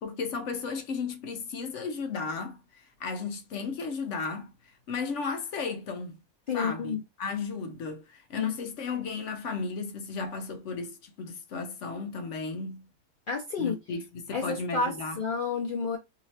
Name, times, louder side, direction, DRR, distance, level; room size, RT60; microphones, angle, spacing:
voice 1, 0.0-6.2 6.5-12.9 13.6-15.2, left 4 dB, 65° left, 0.8 m, -35 dB
voice 2, 6.5-7.0 8.4-8.5 13.3-13.8 14.3-16.0, left 5 dB, 90° left, 0.4 m, -30 dB
3.0 x 2.9 x 2.7 m
omnidirectional pair, 1.7 m